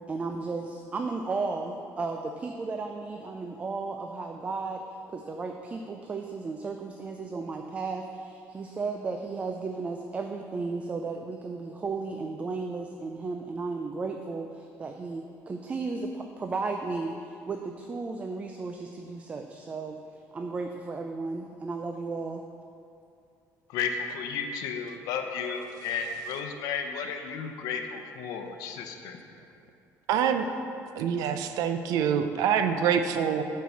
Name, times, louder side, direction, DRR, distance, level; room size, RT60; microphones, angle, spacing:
voice 1, 0.1-4.8 5.1-20.0 20.3-22.4, right 4 dB, 20° right, 4 dB, 0.4 m, -34 dB
voice 2, 23.7-29.2, left 6 dB, 85° left, 5 dB, 0.8 m, -33 dB
voice 3, 30.1-30.5 31.0-33.4, right 8 dB, 80° right, 8 dB, 0.6 m, -25 dB
9.0 x 4.7 x 7.0 m, 2.6 s
cardioid pair, 160°, 6 cm